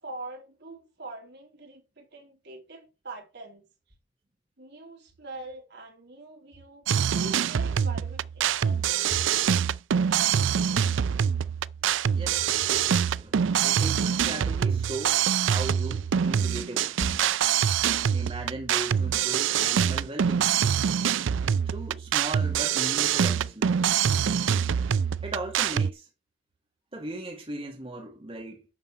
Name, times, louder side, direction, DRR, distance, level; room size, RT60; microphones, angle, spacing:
voice 1, 0.0-3.6 4.6-9.2 11.8-12.0, right 2 dB, 60° right, 3.4 m, -44 dB
sound 1, 6.9-25.9, right 8 dB, 80° right, 0.4 m, -25 dB
voice 2, 12.1-12.9 13.2-17.1 18.1-20.5 21.7-23.7 25.2-26.1 26.9-28.7, right 2 dB, 30° right, 2.4 m, -37 dB
11.0 x 4.4 x 7.4 m
head